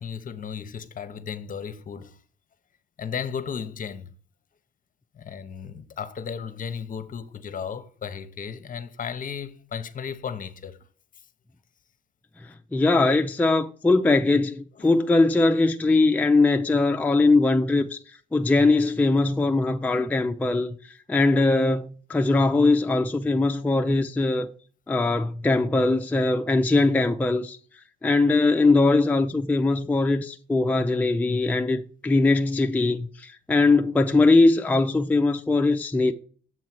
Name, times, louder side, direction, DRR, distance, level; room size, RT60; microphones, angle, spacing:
voice 1, 0.0-2.2 3.0-4.1 5.1-10.8 14.8-14.9, left 7 dB, 45° left, 0.7 m, -35 dB
voice 2, 12.4-18.0 18.3-24.5 24.9-27.6 28.0-36.1, left 3 dB, 10° left, 0.4 m, -21 dB
7.5 x 3.1 x 5.9 m
cardioid pair, 90°, 20 cm